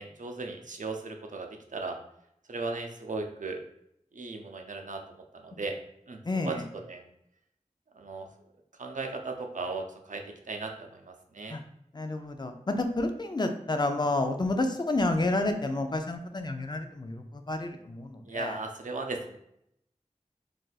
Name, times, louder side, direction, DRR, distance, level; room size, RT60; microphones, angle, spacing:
voice 1, 0.0-2.0 2.5-3.6 4.1-5.8 6.1-6.2 6.4-7.0 8.0-8.3 8.8-11.6 18.3-19.4, right 3 dB, 90° right, 3 dB, 0.4 m, -37 dB
voice 2, 6.2-6.6 11.5-11.6 11.9-18.6, left 2 dB, 35° left, 6 dB, 0.4 m, -30 dB
2.4 x 2.3 x 3.9 m, 0.76 s
wide cardioid pair, 45°, 13 cm